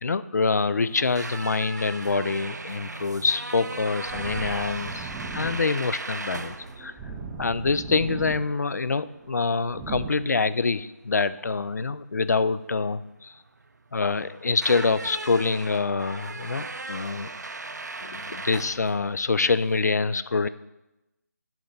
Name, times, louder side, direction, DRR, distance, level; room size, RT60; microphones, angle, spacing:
voice 1, 0.0-6.9 7.4-13.3 13.9-17.3 18.0-20.5, left 4 dB, 70° left, 16 dB, 0.5 m, -26 dB
sound 1, 0.9-19.8, right 3 dB, 85° right, 0.6 m, -38 dB
sound 2, 3.2-10.1, right 4 dB, 5° right, 0.4 m, -39 dB
10.5 x 4.0 x 5.8 m, 0.98 s
figure-of-eight pair, 160°, 9 cm